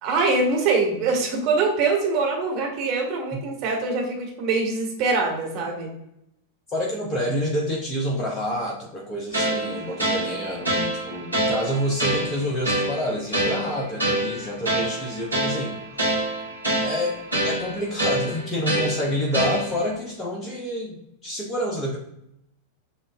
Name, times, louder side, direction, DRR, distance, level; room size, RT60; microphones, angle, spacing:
voice 1, 0.0-5.9, right 3 dB, 40° right, -1 dB, 1.4 m, -23 dB
voice 2, 6.7-15.7 16.8-17.2 17.4-22.0, equal, 20° left, -1 dB, 0.8 m, -28 dB
sound 1, 9.3-20.0, right 1 dB, 90° right, 1.4 m, -26 dB
6.9 x 2.5 x 2.6 m, 0.79 s
figure-of-eight pair, 90°, 0 cm